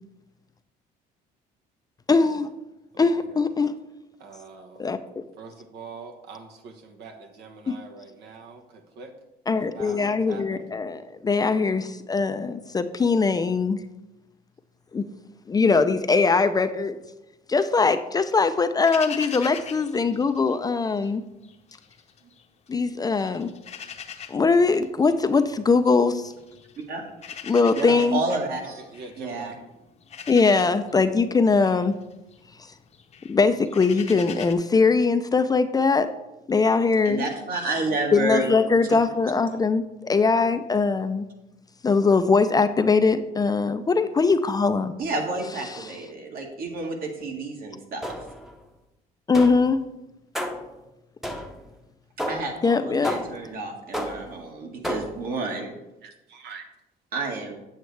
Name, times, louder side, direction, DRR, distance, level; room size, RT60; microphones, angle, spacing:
voice 1, 2.1-2.5 3.0-3.7 4.8-5.0 7.7-7.8 9.5-13.8 14.9-15.1 15.5-17.0 17.5-21.2 22.7-23.5 24.3-26.3 27.5-28.2 30.3-31.9 33.3-36.1 36.5-37.3 38.1-41.3 41.8-45.0 45.7-45.9 49.3-49.8 52.6-53.1, left 4 dB, 20° left, 9 dB, 0.4 m, -21 dB
voice 2, 2.9-3.4 4.2-5.0 5.4-9.1 9.5-10.7 22.2-22.3 28.8-29.5 56.0-56.6, right 4 dB, 75° right, 3 dB, 1.1 m, -44 dB
sound 1, 18.9-21.1 21.4-22.7 23.1-34.5, left 7 dB, 40° left, 0.8 m, -42 dB
voice 3, 27.8-28.8 29.2-29.5 37.0-38.5 45.0-48.0 52.3-55.8 57.1-57.5, right 2 dB, 60° right, 1 dB, 1.8 m, -30 dB
sound 2, 48.0-48.5 49.3-49.8 50.3-50.8 51.2-51.7 52.2-52.6 53.0-53.5 53.9-54.4 54.8-55.3, equal, ahead, 0.8 m, -32 dB
8.0 x 7.9 x 3.3 m, 0.97 s
cardioid pair, 110°, 17 cm